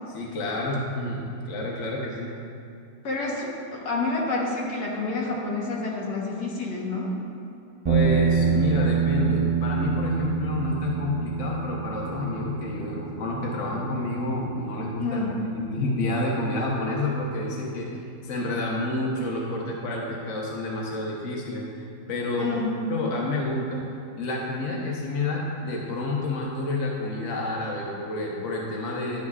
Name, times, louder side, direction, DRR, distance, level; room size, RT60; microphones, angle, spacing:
voice 1, 0.1-2.3 7.9-15.2 15.5-17.9 18.2-22.5 22.9-23.8 24.2-29.2, left 2 dB, 50° left, -3 dB, 1.3 m, -29 dB
voice 2, 3.0-7.1 15.0-15.3 22.4-22.7, left 3 dB, 80° left, -3 dB, 1.7 m, -28 dB
sound 1, 7.8-16.2, right 7 dB, 40° right, 0.4 m, -27 dB
10.5 x 7.2 x 2.4 m, 2.6 s
omnidirectional pair, 1.7 m